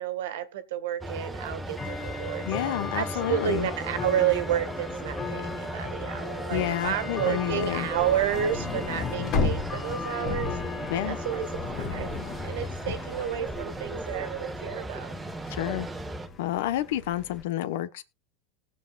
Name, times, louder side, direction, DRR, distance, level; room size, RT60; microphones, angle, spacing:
voice 1, 0.0-2.4 2.9-10.6 11.1-11.5 11.7-12.2 12.4-15.1, right 10 dB, 80° right, 1.7 m, -30 dB
sound 1, 1.0-16.3, right 2 dB, 10° right, 1.2 m, -37 dB
Bell / Tick-tock, 1.1-17.4, left 6 dB, 25° left, 1.6 m, -40 dB
voice 2, 2.4-3.7 6.5-7.9 10.9-11.2 15.5-15.9 16.4-18.0, left 13 dB, 75° left, 1.0 m, -29 dB
sound 2, 7.9-14.2, left 5 dB, 45° left, 1.6 m, -33 dB
19.0 x 7.3 x 2.4 m
supercardioid pair, 120°, 0 cm